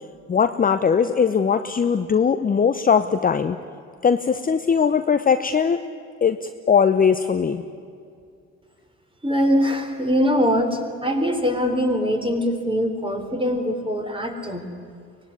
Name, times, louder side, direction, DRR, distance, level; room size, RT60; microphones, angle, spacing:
voice 1, 0.3-3.6 4.0-5.8 6.2-7.6, left 6 dB, 25° left, 9 dB, 0.9 m, -20 dB
voice 2, 9.2-14.7, equal, 15° right, 5 dB, 4.1 m, -22 dB
24.0 x 19.5 x 9.7 m, 2.4 s
hypercardioid pair, 60°, 37 cm